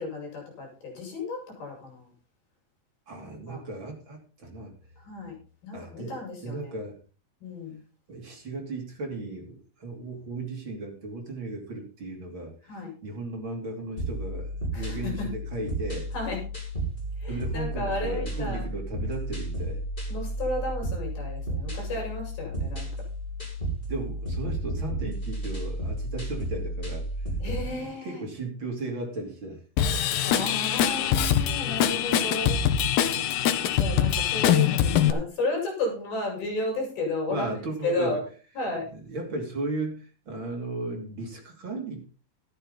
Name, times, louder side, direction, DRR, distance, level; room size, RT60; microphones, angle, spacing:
voice 1, 0.0-2.1 3.5-3.6 5.0-5.4 5.6-6.7 7.4-7.8 12.7-12.9 14.7-15.3 16.1-16.4 17.2-18.6 20.1-22.9 27.4-28.2 30.2-32.6 33.7-37.5 37.8-38.2 38.6-38.9, left 2 dB, 70° left, 1 dB, 7.7 m, -33 dB
voice 2, 3.1-4.7 5.7-7.0 8.1-16.1 17.3-19.8 23.9-27.1 27.6-29.6 33.2-33.3 37.3-38.2 38.9-42.0, right 2 dB, 35° right, 1 dB, 3.3 m, -36 dB
sound 1, 14.0-27.7, right 1 dB, 10° left, 5.1 m, -32 dB
Drum kit / Drum, 29.8-35.1, left 9 dB, 90° left, 3.0 m, -23 dB
13.0 x 12.0 x 4.1 m, 0.37 s
omnidirectional pair, 4.5 m